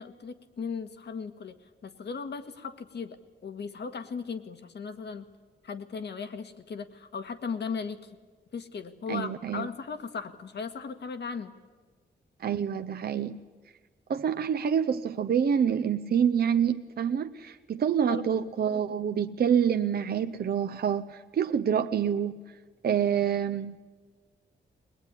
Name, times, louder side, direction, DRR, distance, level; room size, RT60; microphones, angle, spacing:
voice 1, 0.0-1.6 1.8-5.3 5.6-8.0 8.5-11.5 18.1-18.3, left 5 dB, 70° left, 7 dB, 1.8 m, -37 dB
voice 2, 9.1-9.7 12.4-13.4 14.1-22.4 22.8-23.8, right 8 dB, 60° right, 8 dB, 0.7 m, -27 dB
21.5 x 21.0 x 9.9 m, 1.4 s
wide cardioid pair, 150°, 18 cm